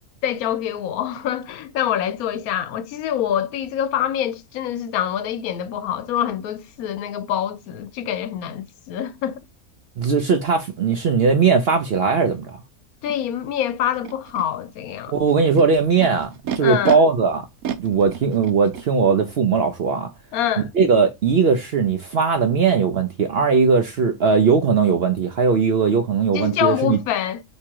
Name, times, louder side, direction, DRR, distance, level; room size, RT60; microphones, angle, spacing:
voice 1, 0.2-9.4 13.0-15.1 16.6-17.0 20.3-20.7 26.3-27.4, left 10 dB, 75° left, 1.0 m, -25 dB
voice 2, 10.0-12.6 15.1-16.3 16.6-17.4 17.8-20.1 20.7-27.0, right 5 dB, 60° right, 0.6 m, -19 dB
Animal, 13.1-13.2 13.9-14.4 15.3-16.9 17.6-18.9, right 8 dB, 75° right, 1.1 m, -31 dB
3.6 x 3.0 x 4.4 m
omnidirectional pair, 1.6 m